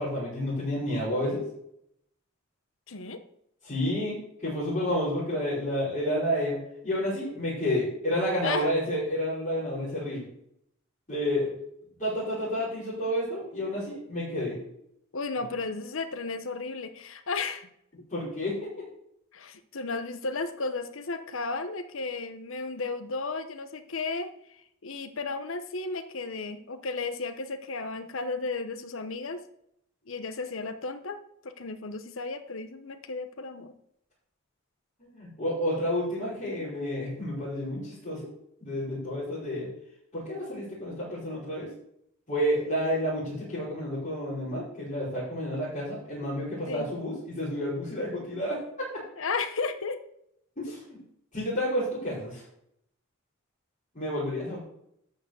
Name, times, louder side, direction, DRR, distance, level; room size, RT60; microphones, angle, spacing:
voice 1, 0.0-1.4 3.6-4.1 4.4-6.6 6.8-10.2 11.1-11.5 12.0-14.6 18.1-18.7 35.0-38.3 38.6-39.7 40.1-41.7 42.3-48.9 50.6-50.8 51.3-52.4 54.0-54.6, equal, 35° left, -11 dB, 5.2 m, -30 dB
voice 2, 2.9-3.2 8.4-8.7 15.1-17.7 19.3-24.3 24.8-29.4 30.1-33.7 46.7-46.9 49.2-50.0, left 3 dB, 65° left, 10 dB, 0.9 m, -34 dB
12.5 x 4.9 x 7.9 m, 0.74 s
head